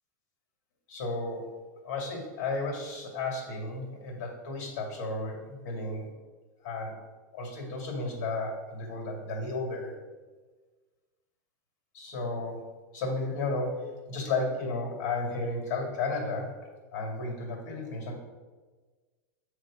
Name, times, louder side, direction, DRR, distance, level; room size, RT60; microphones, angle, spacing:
voice 1, 0.9-1.5 1.8-6.1 6.6-6.9 7.3-10.0 11.9-12.6 12.9-18.1, left 3 dB, 65° left, 0 dB, 2.4 m, -33 dB
7.7 x 3.2 x 6.2 m, 1.3 s
supercardioid pair, 145°, 10 cm